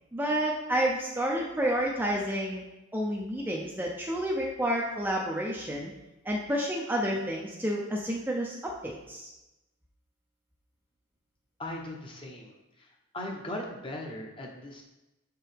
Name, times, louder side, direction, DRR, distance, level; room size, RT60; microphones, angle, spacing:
voice 1, 0.1-2.6 2.9-5.9 6.2-9.3, equal, 10° right, -2 dB, 0.5 m, -30 dB
voice 2, 11.6-12.9 13.1-14.8, left 1 dB, 25° left, 0 dB, 0.8 m, -39 dB
6.5 x 4.6 x 3.4 m, 0.98 s
head